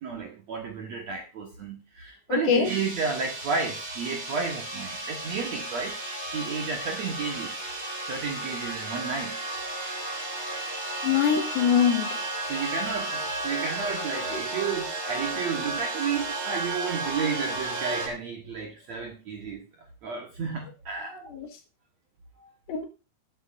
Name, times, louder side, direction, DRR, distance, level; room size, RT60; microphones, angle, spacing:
voice 1, 0.0-6.0 6.3-7.5 8.0-9.4 12.5-19.6 20.0-21.3 22.4-22.5, right 5 dB, 60° right, 1 dB, 2.0 m, -32 dB
voice 2, 2.3-2.7 11.0-12.1 21.3-21.5 22.7-22.9, left 8 dB, 70° left, 4 dB, 3.2 m, -23 dB
sound 1, 2.6-18.1, right 2 dB, 20° right, 2.1 m, -33 dB
18.5 x 8.5 x 2.6 m, 0.29 s
omnidirectional pair, 4.8 m